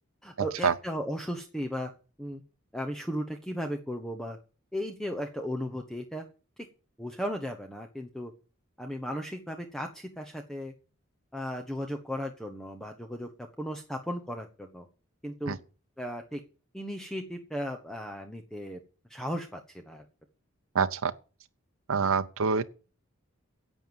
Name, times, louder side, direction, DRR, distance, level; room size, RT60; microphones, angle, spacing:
voice 1, 0.2-1.9 2.2-2.4 2.7-4.4 4.7-6.2 6.6-6.7 7.0-8.3 8.8-10.7 11.3-13.3 13.6-14.9 15.2-15.6 16.0-16.4 16.7-18.8 19.1-20.0, equal, 5° left, 1.1 m, -36 dB
voice 2, 20.7-21.1 21.9-22.7, right 5 dB, 85° right, 0.7 m, -25 dB
11.0 x 8.0 x 7.1 m
head